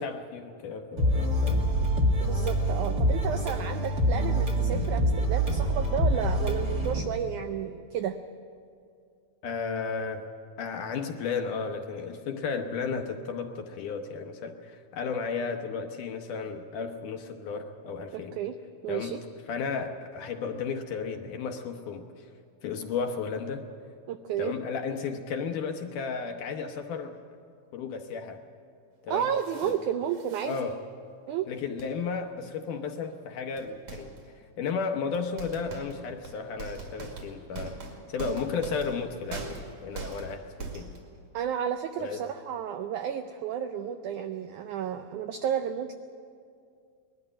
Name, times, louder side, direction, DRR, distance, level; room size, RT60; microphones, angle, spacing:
voice 1, 0.0-1.7 9.4-10.3 10.6-18.4 18.9-19.2 19.5-22.3 22.6-23.7 24.4-27.2 27.7-28.4 29.0-29.3 29.6-29.7 30.4-30.7 31.5-37.8 38.1-40.9 42.0-42.2, left 5 dB, 70° left, 4 dB, 2.2 m, -34 dB
sound 1, 1.0-7.0, equal, 40° right, 1.5 m, -25 dB
voice 2, 2.2-8.2 18.1-18.6 18.8-19.2 24.1-24.5 29.1-30.6 31.3-31.5 41.3-45.9, right 9 dB, 85° right, 8 dB, 1.7 m, -32 dB
sound 2, 29.1-29.8 30.1-30.6 31.8-31.9 32.9-33.0 33.6-34.3 35.1-41.2, right 4 dB, 55° right, 3.7 m, -42 dB
20.5 x 13.5 x 9.8 m, 2.3 s
omnidirectional pair, 4.4 m